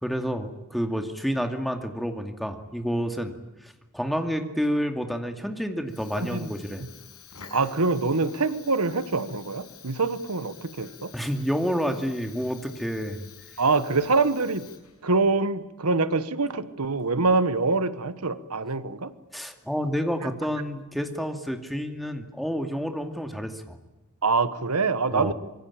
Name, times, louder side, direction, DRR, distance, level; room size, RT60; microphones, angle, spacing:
voice 1, 0.0-3.3 3.6-6.9 11.1-13.3 19.3-23.8 25.1-25.3, equal, ahead, 5 dB, 2.4 m, -29 dB
Fire, 5.8-15.2, left 8 dB, 80° left, 5.9 m, -49 dB
voice 2, 6.2-6.5 7.5-11.1 13.6-14.7 15.0-19.1 24.2-25.3, right 3 dB, 85° right, 14 dB, 1.3 m, -25 dB
26.0 x 23.0 x 8.8 m, 0.99 s
head